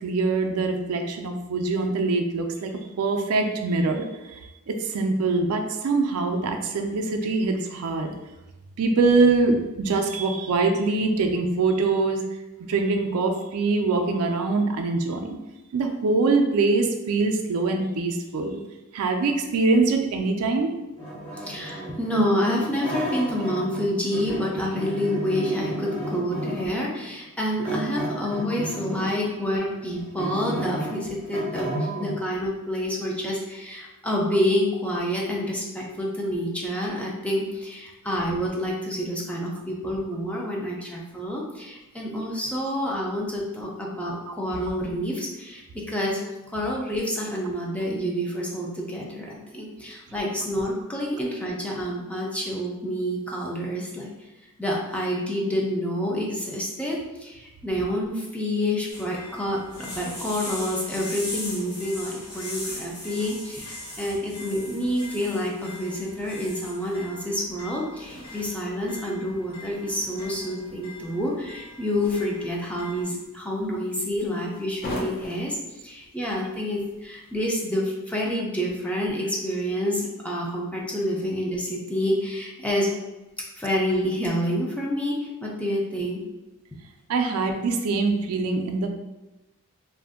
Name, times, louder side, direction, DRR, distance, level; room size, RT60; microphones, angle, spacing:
voice 1, 0.0-8.1 8.8-12.2 12.7-15.4 15.7-18.6 18.9-20.8 87.1-88.9, right 3 dB, 70° right, 4 dB, 0.4 m, -23 dB
sound 1, 21.0-23.8 24.1-26.8 27.6-29.2 29.7-32.2, right 1 dB, 25° left, 1.2 m, -32 dB
voice 2, 21.3-46.2 46.5-54.1 54.6-82.9 83.6-86.2, equal, 5° left, -3 dB, 0.4 m, -28 dB
sound 2, 58.9-73.0, left 1 dB, 90° left, 1.1 m, -40 dB
sound 3, 67.4-77.7, left 1 dB, 45° left, 0.7 m, -43 dB
2.5 x 2.1 x 3.4 m, 1.1 s
head